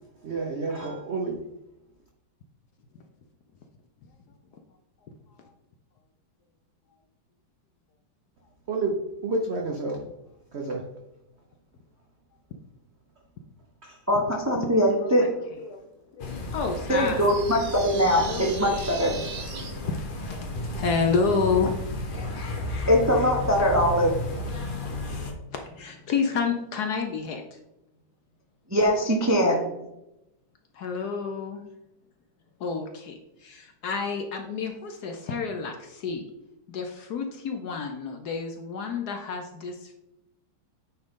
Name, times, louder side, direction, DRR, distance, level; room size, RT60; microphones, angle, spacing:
voice 1, 0.2-1.4 8.7-9.0 9.2-10.1 10.5-10.8 13.8-14.0 16.6-16.8 19.5-19.9, right 3 dB, 75° right, 0 dB, 0.6 m, -30 dB
voice 2, 14.1-15.2 16.9-19.1 22.9-24.1 28.7-29.7, equal, 25° right, -1 dB, 0.3 m, -22 dB
voice 3, 15.0-15.3 15.6-15.8 16.2-17.3 18.2-18.5 19.9-20.0 20.3-20.4 20.7-21.8 22.8-22.9 25.2-27.6 30.7-31.6 32.6-36.3 36.7-39.9, left 5 dB, 65° left, 4 dB, 1.0 m, -29 dB
sound 1, 16.2-25.3, left 1 dB, 85° left, 0.4 m, -33 dB
sound 2, 17.3-19.7, right 6 dB, 60° right, 1.3 m, -39 dB
8.8 x 3.9 x 3.6 m, 0.90 s
omnidirectional pair, 2.2 m